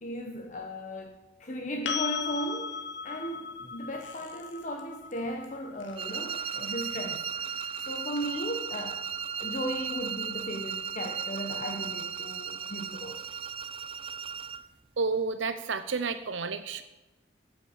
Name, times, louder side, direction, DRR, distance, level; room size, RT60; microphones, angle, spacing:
voice 1, 0.0-2.8 3.0-7.2 7.8-9.0 9.4-13.2, equal, 40° left, 2 dB, 1.3 m, -36 dB
sound 1, 1.8-9.7 12.5-12.6, left 7 dB, 65° left, 1.1 m, -39 dB
Squeak, 4.0-4.8 5.1-5.5 5.8-9.2 9.5-9.6, left 5 dB, 80° left, 2.2 m, -55 dB
sound 2, 5.9-14.7, right 7 dB, 30° right, 0.4 m, -36 dB
voice 2, 15.0-16.8, right 4 dB, 90° right, 10 dB, 0.8 m, -30 dB
15.0 x 7.5 x 8.9 m, 1.1 s
head